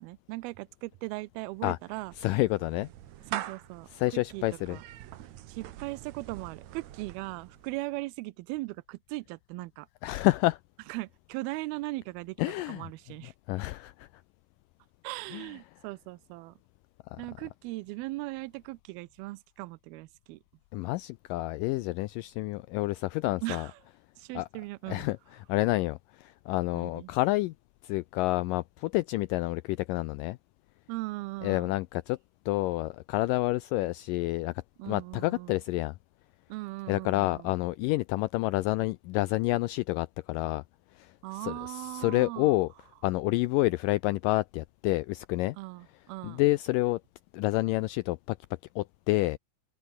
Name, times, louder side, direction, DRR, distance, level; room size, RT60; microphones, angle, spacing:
voice 1, 0.0-2.1 3.3-3.9 4.1-4.4 4.7-4.8 5.5-9.9 10.9-12.4 12.7-13.3 15.0-16.5 17.2-20.4 23.4-23.7 24.2-25.1 26.7-27.1 30.9-31.7 34.8-35.5 36.5-37.5 41.2-42.5 45.6-46.4, right 21 dB, 85° right, 2.5 m, -38 dB
Clapping / Meow, 1.4-7.9, right 13 dB, 70° right, 1.8 m, -44 dB
voice 2, 2.2-2.9 3.9-4.8 10.0-10.6 12.4-12.9 13.2-14.1 15.3-15.6 17.1-17.2 20.7-23.7 24.4-24.5 24.9-27.5 27.8-30.4 31.4-32.2 32.5-34.5 34.8-36.0 36.9-40.6 40.9-42.7 43.0-45.6 46.2-47.0 47.3-48.4 48.8-49.4, left 19 dB, 85° left, 1.9 m, -29 dB
open air
omnidirectional pair, 4.3 m